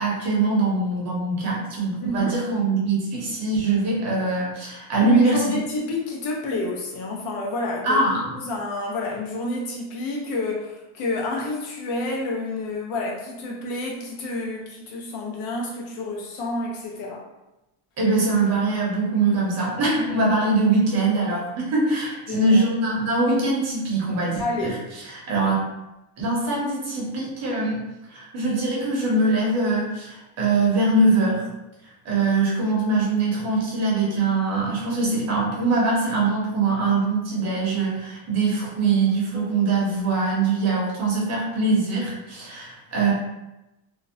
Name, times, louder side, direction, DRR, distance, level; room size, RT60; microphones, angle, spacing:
voice 1, 0.0-5.6 7.8-8.3 18.0-25.6 26.2-27.8 28.1-31.5 31.8-43.1, right 3 dB, 35° right, -4 dB, 0.6 m, -22 dB
voice 2, 2.0-2.4 5.0-8.0 8.3-17.2 22.3-22.6 24.4-24.8, left 2 dB, 80° left, -2 dB, 0.8 m, -29 dB
2.5 x 2.0 x 2.6 m, 0.97 s
cardioid pair, 165°, 48 cm